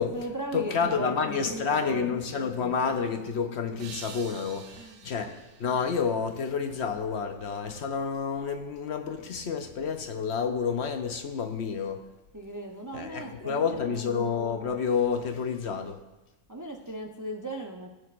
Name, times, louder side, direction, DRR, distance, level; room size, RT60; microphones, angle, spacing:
voice 1, 0.0-2.1 3.2-3.3 4.8-5.1 12.3-14.1 16.5-17.9, right 1 dB, 30° right, 1 dB, 0.3 m, -37 dB
voice 2, 0.5-12.0 12.9-16.0, left 6 dB, 60° left, 6 dB, 0.8 m, -29 dB
sound 1, 3.8-6.9, right 6 dB, 70° right, 1.1 m, -48 dB
17.0 x 6.3 x 2.5 m, 1.0 s
omnidirectional pair, 1.5 m